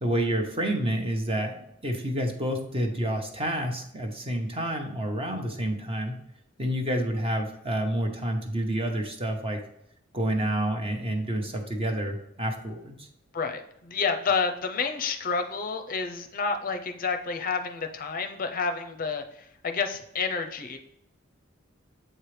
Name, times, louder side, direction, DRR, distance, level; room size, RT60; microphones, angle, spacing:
voice 1, 0.0-1.6 1.8-6.2 6.6-9.6 10.1-13.1, right 1 dB, 30° right, 3 dB, 1.0 m, -29 dB
voice 2, 13.3-19.2 19.6-20.8, left 5 dB, 45° left, 6 dB, 0.6 m, -29 dB
7.7 x 4.6 x 3.3 m, 0.78 s
head